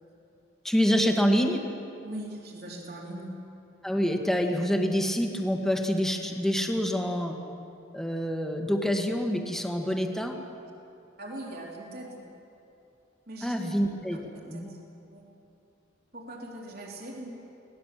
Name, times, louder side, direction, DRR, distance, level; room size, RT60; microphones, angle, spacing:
voice 1, 0.6-1.6 3.8-7.4 7.9-10.3 13.4-14.2 14.4-14.7, equal, ahead, 2 dB, 1.6 m, -26 dB
voice 2, 2.0-3.3 11.2-12.2 13.3-13.6 14.1-14.2 14.5-14.8 15.1-15.2 16.1-17.3, right 1 dB, 50° right, -2 dB, 3.5 m, -40 dB
24.5 x 18.5 x 7.6 m, 2.7 s
head